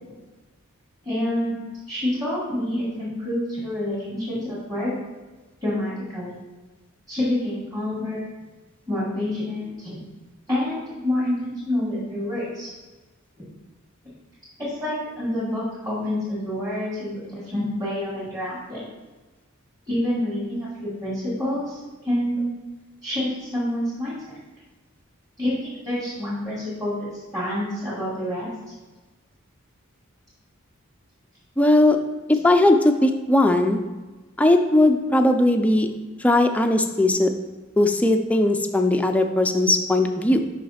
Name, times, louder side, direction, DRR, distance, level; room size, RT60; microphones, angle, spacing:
voice 1, 1.0-4.9 5.6-6.4 7.1-8.3 8.9-10.0 10.5-12.7 14.7-18.9 19.9-22.5 23.0-24.2 25.4-28.5, left 1 dB, 15° right, -9 dB, 2.1 m, -27 dB
voice 2, 31.6-32.0 32.3-33.8 34.4-35.9 36.2-37.3 37.8-40.4, left 1 dB, 5° left, 5 dB, 0.4 m, -18 dB
5.7 x 5.4 x 4.2 m, 1.2 s
head